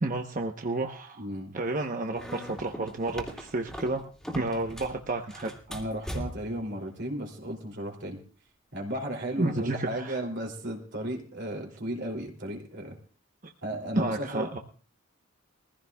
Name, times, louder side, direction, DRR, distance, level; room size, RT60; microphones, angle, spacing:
voice 1, 0.0-1.3 1.5-4.0 4.3-5.5 9.4-10.2 14.0-14.6, right 2 dB, 40° right, 3 dB, 1.0 m, -31 dB
voice 2, 1.2-1.5 5.7-8.2 8.7-12.9 13.6-14.5, right 1 dB, 55° right, 1 dB, 2.9 m, -34 dB
sound 1, 2.1-5.0 5.3-6.6, equal, ahead, 2.5 m, -40 dB
22.5 x 15.5 x 2.3 m, 0.39 s
head